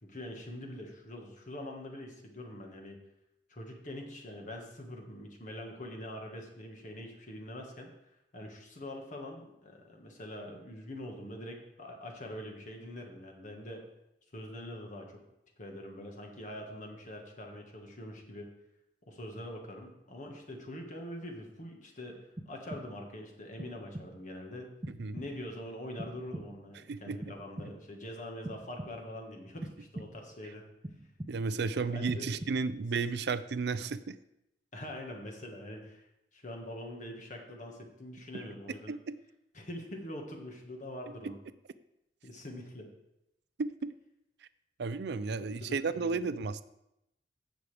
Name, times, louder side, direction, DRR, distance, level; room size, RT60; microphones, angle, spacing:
voice 1, 0.0-3.0 3.5-7.9 8.3-13.9 14.3-15.2 15.6-18.5 19.0-24.7 25.1-30.7 31.9-32.4 34.7-36.1 36.3-38.9 39.5-41.4 42.2-42.9 45.4-46.3, left 1 dB, 45° left, 1 dB, 1.6 m, -44 dB
sound 1, 22.4-23.2 23.6-24.3 24.8-25.6 26.0-26.8 27.2-28.0 28.4-29.2 29.6-30.4 30.8-31.7 32.1-32.9, right 1 dB, 20° right, 0.6 m, -45 dB
voice 2, 26.9-27.3 31.3-34.2 38.3-38.4 38.9-39.2 41.2-41.3 43.6-43.9 44.8-46.6, right 4 dB, 70° right, 14 dB, 0.5 m, -33 dB
16.5 x 6.4 x 3.4 m, 0.85 s
head